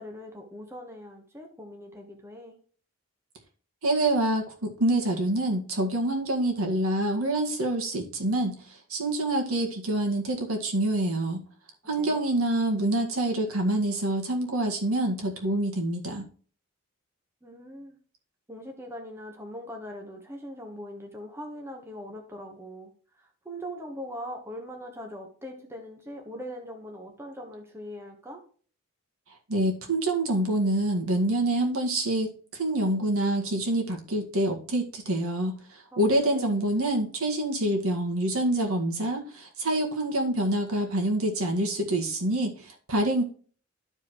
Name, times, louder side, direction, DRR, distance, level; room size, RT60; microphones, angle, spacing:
voice 1, 0.0-2.6 11.9-12.3 17.4-18.0 18.5-22.9 23.2-28.4 35.9-36.5, equal, 10° right, 2 dB, 1.3 m, -41 dB
voice 2, 3.8-8.6 8.9-11.4 11.9-16.2 29.5-43.2, right 1 dB, 75° right, 2 dB, 1.9 m, -26 dB
13.0 x 4.8 x 3.1 m, 0.42 s
head